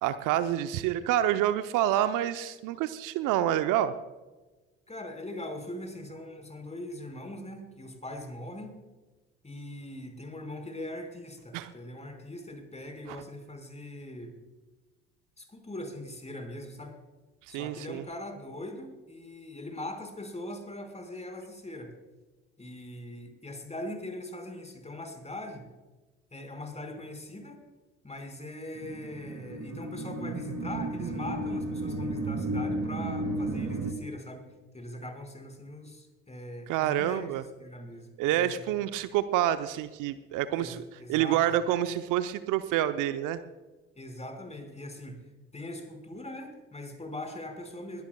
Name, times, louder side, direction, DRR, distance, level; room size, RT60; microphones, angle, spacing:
voice 1, 0.0-3.9 11.5-11.7 17.5-18.0 36.7-37.4 38.2-40.8 41.1-43.4, right 12 dB, 65° right, 11 dB, 0.8 m, -27 dB
voice 2, 4.9-8.8 9.4-14.3 15.4-17.0 17.5-21.9 22.6-25.7 26.3-27.6 28.0-38.6 40.5-41.4 44.0-45.2 45.5-48.0, left 1 dB, 20° left, 4 dB, 5.0 m, -41 dB
sound 1, 28.7-33.9, right 2 dB, 45° right, 2.5 m, -33 dB
21.5 x 17.5 x 2.3 m, 1.2 s
hypercardioid pair, 50°, 35 cm